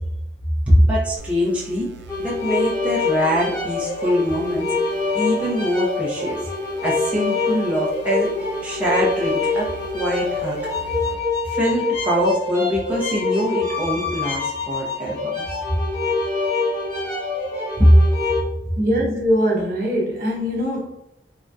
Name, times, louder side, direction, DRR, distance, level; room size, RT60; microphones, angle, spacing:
voice 1, 0.7-4.7 5.1-6.5 6.8-8.3 8.6-10.6 11.4-15.5 17.8-17.9, equal, 10° right, 0.6 m, -22 dB
sound 1, 1.2-11.2, right 3 dB, 70° right, 0.3 m, -45 dB
sound 2, 2.1-18.4, left 3 dB, 20° left, 1.0 m, -25 dB
voice 2, 18.8-21.0, equal, 50° right, 0.8 m, -22 dB
3.6 x 2.6 x 2.2 m
head